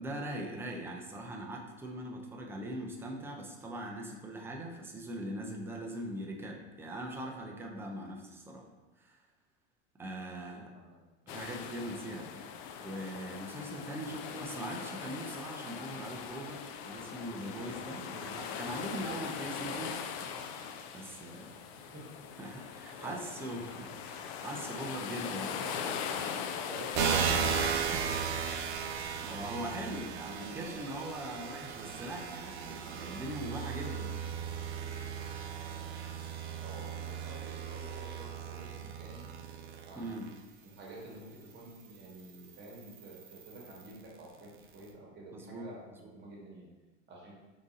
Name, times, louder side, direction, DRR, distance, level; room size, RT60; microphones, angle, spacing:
voice 1, 0.0-8.7 9.0-9.2 10.0-10.7 11.3-12.4 12.8-20.0 20.9-21.6 22.4-25.6 27.8-28.1 28.8-34.1 40.0-40.3 45.3-46.1, right 1 dB, 5° right, -1 dB, 0.3 m, -41 dB
voice 2, 10.2-11.0 11.2-11.4 21.7-22.5 23.0-23.2 25.6-26.0 26.5-27.7 30.4-30.8 36.6-39.3 39.8-40.3 40.6-46.7 47.1-47.3, right 2 dB, 30° right, -3 dB, 1.2 m, -49 dB
sound 1, 11.3-27.7, left 7 dB, 55° left, 0.4 m, -41 dB
sound 2, 26.9-40.3 41.0-44.0, right 7 dB, 60° right, 0.6 m, -36 dB
3.7 x 2.6 x 3.9 m, 1.2 s
supercardioid pair, 120°, 37 cm